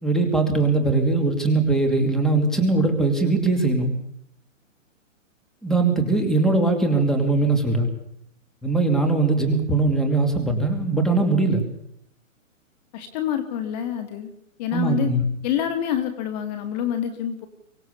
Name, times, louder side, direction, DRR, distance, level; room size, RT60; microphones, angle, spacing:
voice 1, 0.0-3.9 5.6-7.9 8.6-11.6 14.7-15.2, right 3 dB, ahead, 3 dB, 2.7 m, -21 dB
voice 2, 12.9-14.3 14.6-15.1 15.4-17.5, left 10 dB, 30° left, 8 dB, 1.9 m, -27 dB
24.5 x 18.0 x 7.0 m, 0.71 s
hypercardioid pair, 150°, 40 cm